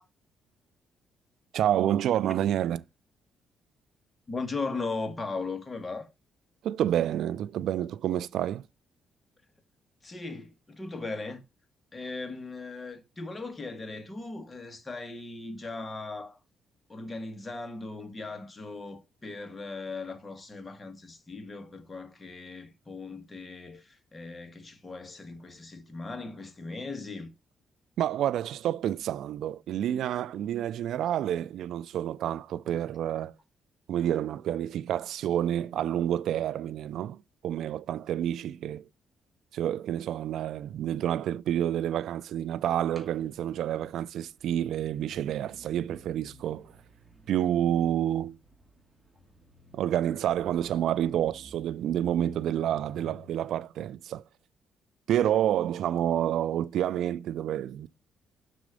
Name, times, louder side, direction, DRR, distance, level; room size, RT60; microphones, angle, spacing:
voice 1, 1.5-2.8 6.6-8.7 28.0-33.3 33.9-38.8 39.5-46.7 47.3-48.4 49.7-54.2 55.1-57.9, right 11 dB, 75° right, 0.3 m, -29 dB
voice 2, 4.3-6.1 10.0-11.4 11.9-16.4 16.9-27.3, left 3 dB, 25° left, 1.5 m, -38 dB
sound 1, 42.9-53.5, equal, 15° right, 2.2 m, -53 dB
6.0 x 4.2 x 5.0 m
cardioid pair, 90°, 0 cm